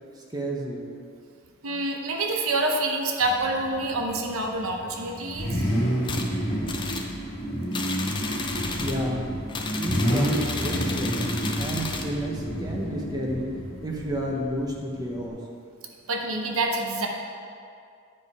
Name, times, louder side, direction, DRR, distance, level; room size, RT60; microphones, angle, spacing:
voice 1, 0.2-0.9 8.8-9.3 9.7-13.5 13.8-15.4, equal, 20° right, -1 dB, 0.9 m, -31 dB
voice 2, 1.6-5.6 16.1-17.1, right 2 dB, 80° right, 2 dB, 0.8 m, -27 dB
Car / Idling / Accelerating revving vroom, 3.2-15.3, equal, 50° left, 1.6 m, -30 dB
sound 1, 6.0-6.3 6.7-7.1 7.7-9.0 9.5-12.1, left 4 dB, 20° left, 0.5 m, -33 dB
9.8 x 4.8 x 4.8 m, 2.3 s
head